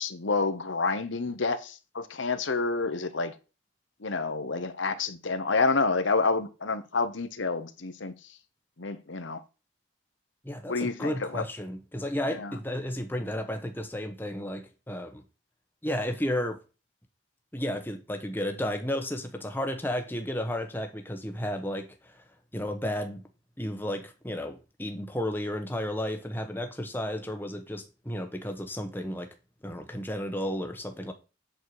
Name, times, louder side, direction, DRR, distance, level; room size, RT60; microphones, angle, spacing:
voice 1, 0.0-3.3 4.0-8.1 8.8-9.4 10.7-11.4 12.4-12.5, left 4 dB, 70° left, 1.1 m, -28 dB
voice 2, 10.4-15.2 15.8-16.6 17.5-22.2 22.5-23.3 23.6-29.3 29.6-31.1, left 1 dB, 10° left, 1.1 m, -33 dB
8.1 x 7.7 x 4.9 m
head